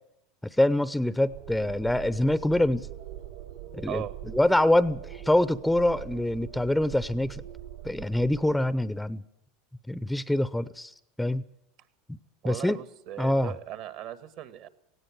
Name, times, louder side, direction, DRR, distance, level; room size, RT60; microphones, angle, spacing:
voice 1, 0.6-2.9 3.7-7.4 7.8-9.2 9.9-10.9 11.2-11.4 12.4-12.8 13.2-13.5, left 1 dB, 5° left, 17 dB, 0.7 m, -25 dB
sound 1, 1.3-8.5, right 12 dB, 80° right, 3.1 m, -42 dB
voice 2, 12.4-14.7, right 12 dB, 60° right, 13 dB, 1.7 m, -38 dB
18.0 x 16.5 x 9.0 m, 0.76 s
hypercardioid pair, 95°, 0 cm